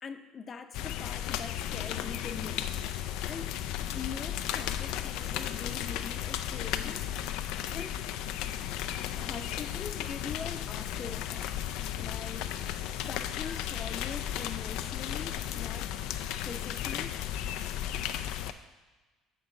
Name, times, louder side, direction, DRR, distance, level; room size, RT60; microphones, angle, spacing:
voice 1, 0.0-3.5 3.9-7.0 7.7-8.0 9.1-11.5 12.0-12.6 13.1-15.9 16.4-17.2, left 5 dB, 40° left, 8 dB, 0.7 m, -43 dB
sound 1, 0.7-18.5, left 11 dB, 70° left, 0.4 m, -34 dB
5.9 x 5.3 x 6.4 m, 1.3 s
hypercardioid pair, 65°, 0 cm